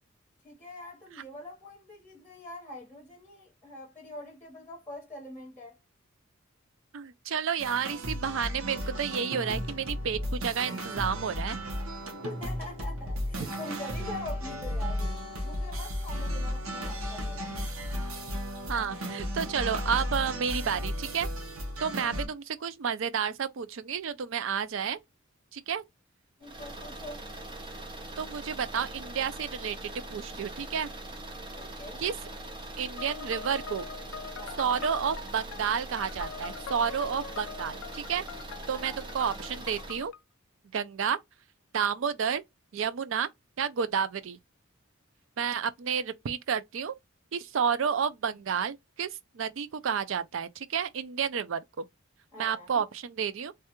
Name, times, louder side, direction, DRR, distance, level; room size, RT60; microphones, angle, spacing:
voice 1, 0.4-5.8 12.1-15.1 15.4-17.4 22.1-22.2 22.5-22.6 26.4-27.2 31.5-32.0 34.4-34.8 38.7-39.1 52.3-52.7, left 1 dB, 10° left, 1.0 m, -44 dB
voice 2, 6.9-11.6 18.7-21.3 21.8-25.0 25.5-25.8 28.2-30.9 32.0-32.1 32.8-33.9 34.6-38.2 38.7-40.1 40.7-41.2 41.7-42.4 42.7-43.3 43.6-44.4 45.4-46.9 47.3-51.6 52.4-53.5, right 7 dB, 65° right, 0.4 m, -31 dB
sound 1, 7.6-22.3, equal, 85° right, 1.0 m, -34 dB
sound 2, 26.4-40.1, right 1 dB, 25° right, 0.6 m, -42 dB
sound 3, 33.0-40.2, left 6 dB, 65° left, 0.4 m, -43 dB
3.3 x 2.3 x 2.9 m
head